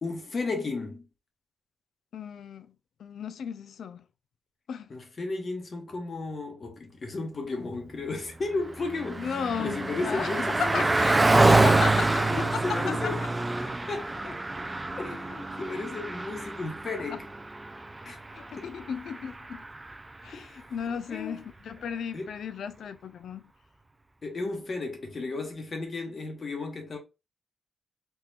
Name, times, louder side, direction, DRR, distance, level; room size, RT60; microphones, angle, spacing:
voice 1, 0.0-1.1 4.9-10.9 11.4-11.8 12.1-13.3 13.9-14.4 14.9-17.3 18.0-18.2 18.6-18.7 20.3-20.6 20.9-21.4 22.1-22.3 24.2-27.0, left 3 dB, 40° left, 0.9 m, -34 dB
voice 2, 2.1-2.7 3.0-4.0 4.7-4.9 9.2-10.3 10.6-11.1 11.5-12.3 12.5-12.6 13.0-13.1 18.3-19.6 20.2-23.4, left 7 dB, 80° left, 0.4 m, -35 dB
Car passing by, 8.4-20.1, right 2 dB, 20° right, 0.3 m, -27 dB
3.6 x 2.9 x 2.4 m
wide cardioid pair, 125°, 0 cm